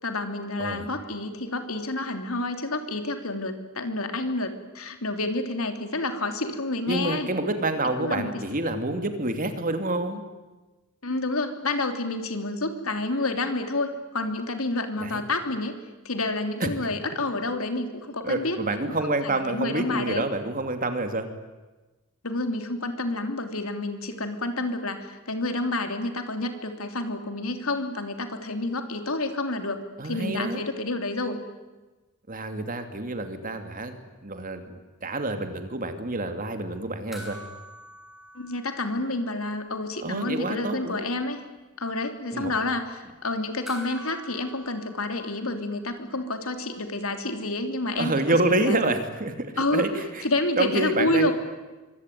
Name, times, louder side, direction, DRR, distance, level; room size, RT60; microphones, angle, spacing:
voice 1, 0.0-7.3 8.0-8.4 11.0-15.7 16.0-18.6 18.8-18.9 19.2-20.2 22.2-31.4 38.3-41.4 41.8-48.8 49.6-49.9 50.2-51.3, left 2 dB, 80° left, 6 dB, 3.3 m, -29 dB
voice 2, 6.9-10.2 15.0-15.2 16.6-16.7 18.2-21.3 30.0-30.6 32.3-33.9 34.2-37.4 40.0-41.1 42.3-42.5 47.9-50.3 50.6-51.3, right 2 dB, 40° right, 7 dB, 2.8 m, -28 dB
sound 1, 37.1-39.8 40.0-40.1 43.6-46.2 48.4-48.5, right 1 dB, ahead, 7.2 m, -46 dB
25.0 x 24.5 x 9.4 m, 1.2 s
head